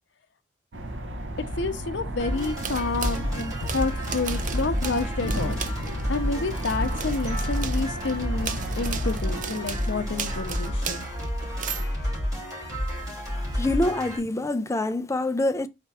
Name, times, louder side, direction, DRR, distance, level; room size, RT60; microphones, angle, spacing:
sound 1, 0.7-10.9, right 1 dB, 75° right, 0.8 m, -34 dB
voice 1, 1.6-5.6 6.1-11.0, left 3 dB, 70° left, 0.7 m, -29 dB
sound 2, 2.2-14.2, equal, 20° right, 2.8 m, -30 dB
sound 3, 2.4-6.1 6.5-11.9, right 6 dB, 45° right, 0.5 m, -37 dB
voice 2, 13.5-15.7, left 2 dB, 15° left, 0.4 m, -25 dB
4.3 x 2.8 x 3.4 m
head